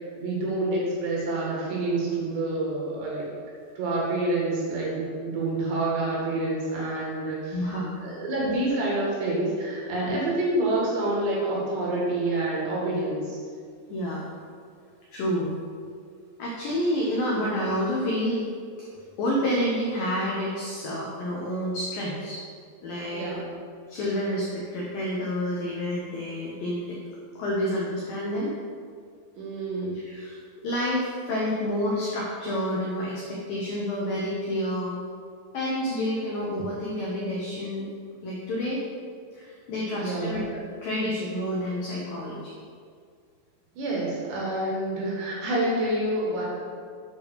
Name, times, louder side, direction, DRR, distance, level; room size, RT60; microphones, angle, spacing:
voice 1, 0.2-3.3 3.8-7.6 8.0-13.4 23.1-23.4 29.4-29.9 39.9-40.4 43.7-46.5, right 2 dB, 65° right, -4 dB, 3.8 m, -27 dB
voice 2, 7.5-8.0 10.1-10.2 13.9-14.2 15.1-15.6 16.4-18.4 19.2-22.4 22.8-23.4 23.9-27.0 27.4-28.5 30.1-35.0 35.5-37.9 38.2-38.8 39.3-42.5, equal, 85° left, -4 dB, 2.0 m, -29 dB
9.2 x 5.2 x 6.6 m, 2.1 s
omnidirectional pair, 6.0 m